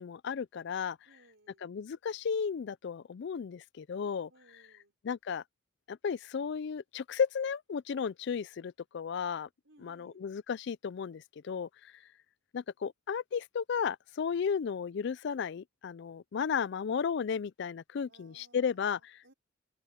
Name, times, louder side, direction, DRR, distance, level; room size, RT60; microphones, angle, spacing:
voice 1, 0.0-1.0 1.6-4.3 5.0-5.4 5.9-9.5 9.8-11.9 12.5-19.3, left 6 dB, 55° left, 0.3 m, -34 dB
voice 2, 1.0-1.7 4.3-4.9 9.6-10.2 18.1-19.3, right 2 dB, 65° right, 5.8 m, -63 dB
open air
head